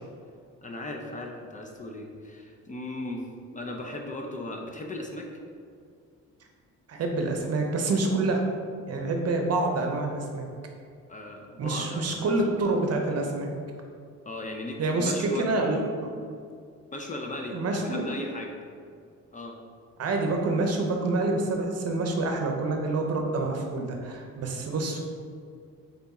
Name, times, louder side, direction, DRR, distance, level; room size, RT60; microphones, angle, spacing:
voice 1, 0.6-3.2 3.5-5.3 11.1-12.5 14.2-15.5 16.9-18.6 19.3-19.6, left 1 dB, 25° left, 1 dB, 0.5 m, -37 dB
voice 2, 6.9-8.4 8.9-10.4 11.6-13.5 14.8-16.1 17.5-18.0 20.0-25.0, right 2 dB, 55° right, 2 dB, 0.7 m, -27 dB
3.7 x 3.5 x 4.1 m, 2.3 s
cardioid pair, 90°, 30 cm